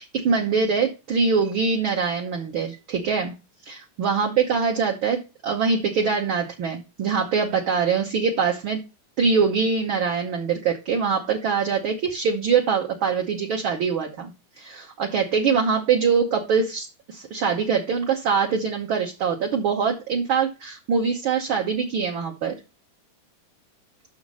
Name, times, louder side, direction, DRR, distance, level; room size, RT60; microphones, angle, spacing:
voice 1, 0.0-3.3 3.6-8.8 9.2-14.3 14.6-22.5, right 5 dB, 70° right, 0 dB, 1.2 m, -23 dB
6.4 x 5.8 x 6.2 m, 0.29 s
omnidirectional pair, 3.7 m